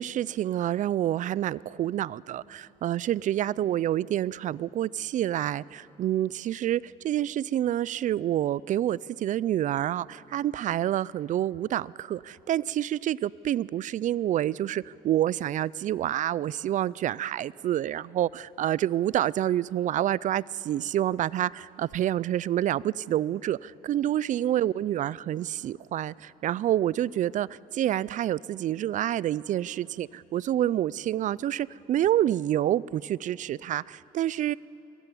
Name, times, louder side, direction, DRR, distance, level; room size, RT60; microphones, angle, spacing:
voice 1, 0.0-34.6, right 12 dB, 50° right, 22 dB, 0.4 m, -28 dB
22.0 x 16.0 x 9.8 m, 2.9 s
cardioid pair, 110°, 17 cm